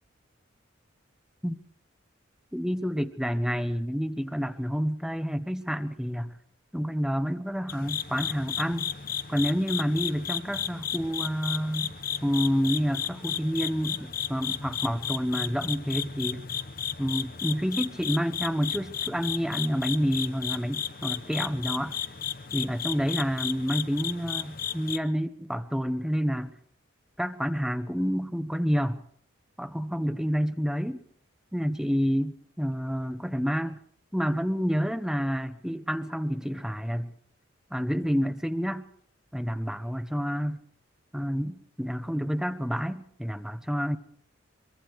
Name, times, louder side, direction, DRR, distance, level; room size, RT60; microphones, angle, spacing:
voice 1, 2.5-6.4 6.7-8.9 9.3-11.9 12.2-16.4 17.0-21.9 22.5-26.5 27.2-29.0 29.6-31.0 31.5-33.8 34.1-37.1 37.7-38.9 39.3-40.6 41.1-44.0, equal, 5° right, 10 dB, 0.9 m, -29 dB
sound 1, 7.7-25.0, left 9 dB, 45° left, 0.9 m, -34 dB
24.5 x 23.5 x 4.7 m, 0.64 s
head